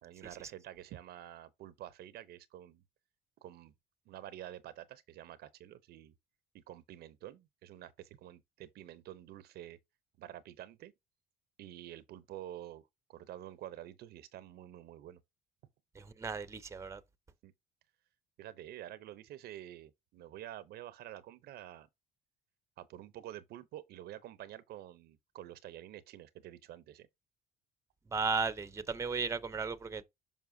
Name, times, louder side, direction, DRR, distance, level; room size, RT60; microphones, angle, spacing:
voice 1, 0.0-2.8 3.4-3.7 4.1-6.1 6.5-9.8 10.2-10.9 11.6-15.2 17.4-17.5 18.4-21.9 22.8-27.1, right 12 dB, 70° right, 0.7 m, -49 dB
voice 2, 15.9-17.0 28.1-30.0, right 4 dB, 15° right, 0.6 m, -35 dB
7.0 x 5.5 x 2.7 m
cardioid pair, 110°, 17 cm